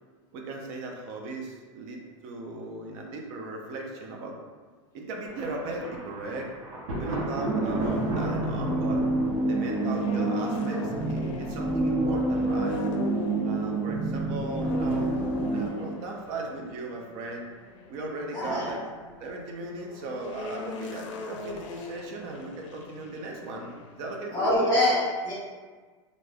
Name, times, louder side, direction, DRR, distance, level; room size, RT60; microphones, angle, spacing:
voice 1, 0.3-4.4 4.9-6.5 7.0-9.0 9.5-12.8 13.4-15.2 15.5-17.5 17.9-18.9 19.2-24.6, right 2 dB, 60° right, 0 dB, 0.6 m, -37 dB
Thunder, 5.3-11.1, right 1 dB, 90° right, 0.8 m, -35 dB
sound 1, 7.4-15.7, right 2 dB, 10° right, 0.3 m, -28 dB
sound 2, 7.8-24.2, left 3 dB, 75° left, 0.4 m, -40 dB
voice 2, 18.3-18.7 24.3-25.3, left 1 dB, 25° left, -9 dB, 1.1 m, -24 dB
3.2 x 2.5 x 2.2 m, 1.4 s
supercardioid pair, 115°, 16 cm